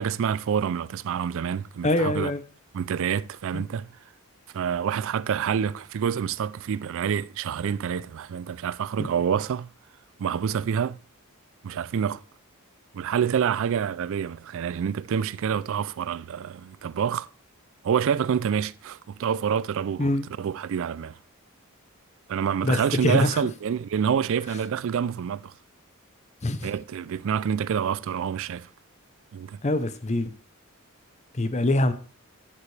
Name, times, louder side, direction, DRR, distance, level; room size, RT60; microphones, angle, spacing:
voice 1, 0.0-2.3 2.7-4.0 4.5-9.7 10.2-11.0 11.6-12.2 12.9-17.3 17.8-20.1 20.4-21.2 22.3-25.5 26.6-28.7 29.3-29.6, right 7 dB, 60° right, 0.3 m, -27 dB
voice 2, 1.8-2.4 3.5-3.6 20.0-20.3 22.6-23.3 26.4-26.7 29.6-30.3 31.3-31.9, left 1 dB, 30° left, 0.6 m, -24 dB
11.0 x 7.3 x 3.3 m
head